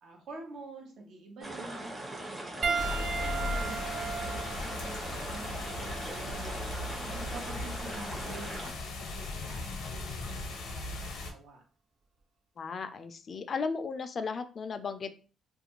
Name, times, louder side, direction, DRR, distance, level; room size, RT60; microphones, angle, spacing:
voice 1, 0.0-11.6, right 2 dB, 75° right, 1 dB, 0.9 m, -48 dB
sound 1, 1.4-8.7, right 1 dB, 30° right, 0.8 m, -40 dB
Piano, 2.6-7.3 8.2-8.4 10.4-10.5, right 5 dB, 55° right, 0.4 m, -37 dB
sound 2, 2.8-11.3, left 3 dB, 90° left, 0.7 m, -38 dB
voice 2, 12.6-15.2, left 5 dB, 50° left, 10 dB, 0.3 m, -35 dB
2.4 x 2.2 x 3.0 m, 0.37 s
cardioid pair, 90°, 0 cm